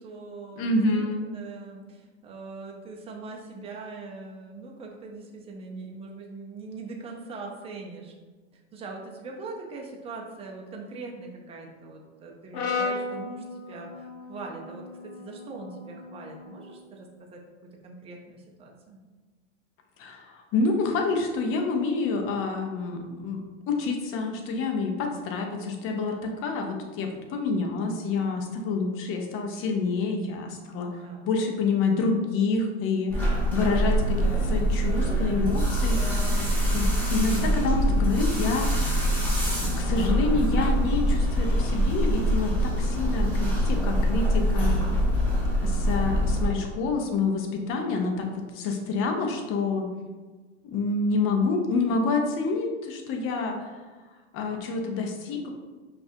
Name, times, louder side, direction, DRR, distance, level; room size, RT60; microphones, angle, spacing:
voice 1, 0.0-8.1 8.7-17.4 17.8-19.0 31.0-31.4, right 3 dB, 15° right, 0 dB, 0.5 m, -41 dB
voice 2, 0.6-1.2 20.0-36.0 36.7-38.9 39.8-44.8 45.6-49.9 50.6-53.7 54.3-55.5, left 3 dB, 40° left, 3 dB, 0.7 m, -28 dB
Brass instrument, 12.5-16.8, left 4 dB, 65° left, 0.9 m, -35 dB
sound 1, 33.1-46.5, equal, 5° left, 1.3 m, -24 dB
5.3 x 2.5 x 2.6 m, 1.3 s
supercardioid pair, 120°, 34 cm